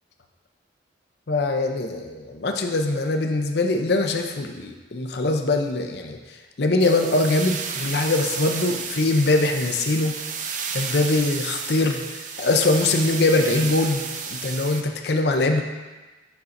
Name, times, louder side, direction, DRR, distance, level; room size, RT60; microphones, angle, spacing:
voice 1, 1.3-6.2 6.6-10.1 10.7-15.6, left 2 dB, 60° left, 4 dB, 0.6 m, -22 dB
sound 1, 6.8-14.8, right 6 dB, 45° right, 0.5 m, -32 dB
8.3 x 5.3 x 2.6 m, 1.2 s
head